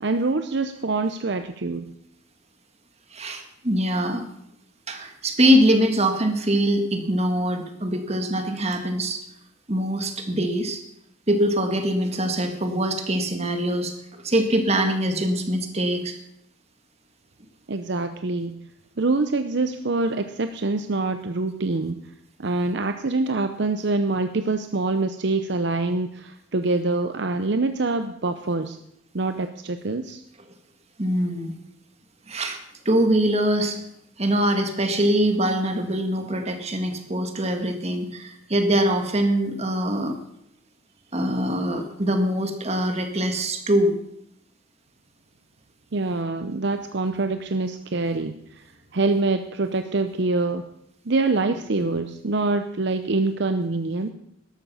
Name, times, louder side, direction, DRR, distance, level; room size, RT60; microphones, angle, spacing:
voice 1, 0.0-1.9 17.7-18.6 19.0-22.0 22.4-28.8 29.1-30.2 45.9-48.4 48.9-50.6 51.1-54.1, right 3 dB, 60° right, 8 dB, 0.7 m, -25 dB
voice 2, 3.1-4.2 4.9-9.2 9.7-10.8 11.3-13.9 14.2-16.2 31.0-31.5 32.3-32.6 32.9-33.8 34.2-40.2 41.1-43.9 51.8-51.9, equal, 30° right, 6 dB, 1.8 m, -23 dB
13.5 x 12.0 x 5.6 m, 0.76 s
head